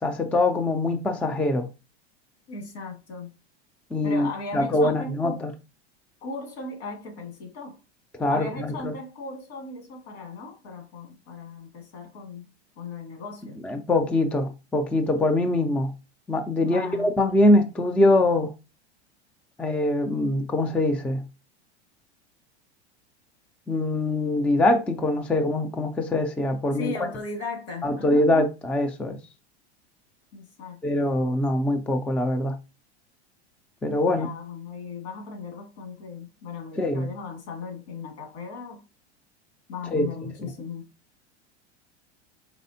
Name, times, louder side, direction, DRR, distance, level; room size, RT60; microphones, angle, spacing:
voice 1, 0.0-1.7 3.9-4.3 4.5-5.5 8.2-8.9 13.6-15.9 16.3-18.5 19.6-21.2 23.7-26.9 27.8-29.2 30.8-32.6 33.8-34.3 36.8-37.1 39.9-40.1, left 1 dB, 5° left, 0.3 m, -23 dB
voice 2, 2.5-3.3 4.0-5.4 6.2-7.8 8.3-12.5 12.8-13.6 16.6-17.1 26.7-28.3 30.3-31.4 34.1-38.8 39.7-40.8, left 4 dB, 70° left, 1.9 m, -37 dB
4.2 x 3.3 x 2.7 m
hypercardioid pair, 95°, 33 cm